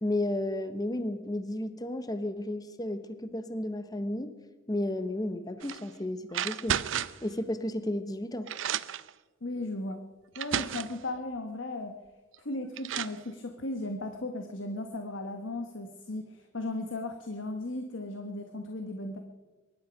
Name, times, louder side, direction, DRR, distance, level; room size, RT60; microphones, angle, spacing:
voice 1, 0.0-4.3 4.7-6.8 7.2-8.5, left 1 dB, 20° left, 10 dB, 0.9 m, -33 dB
sound 1, 5.6-5.8 6.3-7.3 8.1-8.2 8.5-9.1 9.9-10.0 10.4-11.0 12.3-12.4 12.8-13.2, right 9 dB, 75° right, 0.5 m, -32 dB
voice 2, 9.4-10.0 10.4-11.9 12.4-19.2, left 2 dB, 70° left, 5 dB, 1.2 m, -36 dB
23.0 x 11.5 x 5.2 m, 1.3 s
head